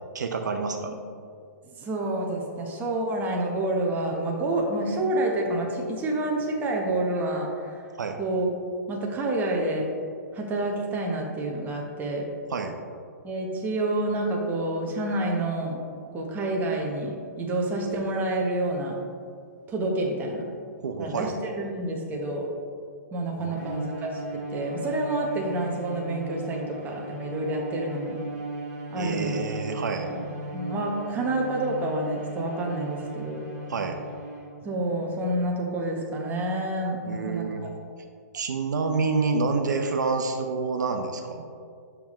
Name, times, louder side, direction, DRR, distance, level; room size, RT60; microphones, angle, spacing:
voice 1, 0.1-0.9 8.0-8.2 12.5-12.7 20.8-21.3 23.4-23.7 29.0-30.1 33.7-34.0 37.0-37.6 38.3-41.4, right 4 dB, 80° right, 5 dB, 0.6 m, -28 dB
voice 2, 1.8-7.7 8.2-8.5 8.9-9.9 10.3-12.3 13.2-15.8 16.1-19.0 19.7-20.4 21.0-22.5 23.1-28.2 28.9-29.4 30.1-33.4 34.6-37.7, right 1 dB, 20° right, 0 dB, 1.0 m, -28 dB
Bowed string instrument, 23.5-34.8, right 2 dB, 45° right, 1.6 m, -37 dB
7.1 x 5.7 x 3.1 m, 2.3 s
hypercardioid pair, 135°, 10 cm